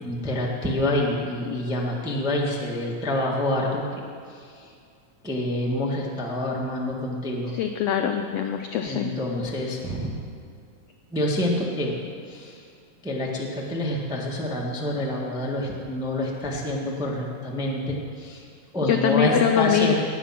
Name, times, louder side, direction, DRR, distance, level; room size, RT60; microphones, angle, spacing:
voice 1, 0.0-3.8 4.3-4.4 5.2-7.5 8.8-10.2 11.1-12.0 12.3-12.6 13.0-18.4 18.7-19.9, left 1 dB, 5° right, -3 dB, 0.6 m, -27 dB
voice 2, 7.5-9.1 18.9-20.0, left 9 dB, 85° left, 6 dB, 1.4 m, -23 dB
18.5 x 8.4 x 5.9 m, 2.3 s
omnidirectional pair, 3.5 m